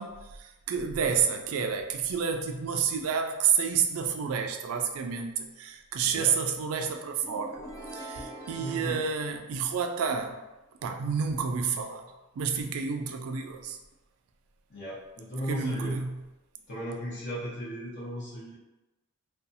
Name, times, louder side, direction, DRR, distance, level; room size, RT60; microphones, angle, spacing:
voice 1, 0.0-7.6 7.9-10.4 10.8-12.0 12.4-13.8 15.5-16.2, right 6 dB, 75° right, 5 dB, 0.3 m, -29 dB
voice 2, 6.0-6.4 8.6-9.0 14.7-16.0 16.7-18.5, equal, 50° left, -9 dB, 0.8 m, -36 dB
sound 1, 7.2-10.0, right 1 dB, 15° left, 0.3 m, -44 dB
2.6 x 2.3 x 2.6 m, 1.0 s
head